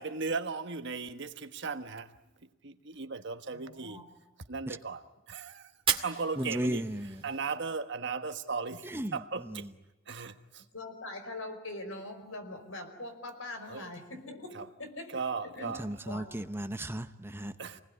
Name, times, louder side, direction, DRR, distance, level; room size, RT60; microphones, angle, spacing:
voice 1, 0.0-2.1 2.4-4.0 4.5-5.7 6.0-9.7 10.1-10.6 13.7-13.9 14.5-14.7 15.1-15.9 17.6-17.8, right 4 dB, 60° right, 1.4 m, -37 dB
voice 2, 3.5-4.0 10.7-15.2 15.5-15.7 16.1-16.5, left 2 dB, 85° left, 5.3 m, -43 dB
Fire, 5.7-7.7, right 7 dB, 30° right, 2.2 m, -35 dB
voice 3, 6.4-7.1 8.9-9.2 15.8-17.5, right 1 dB, 10° right, 0.9 m, -34 dB
28.0 x 20.0 x 9.9 m
head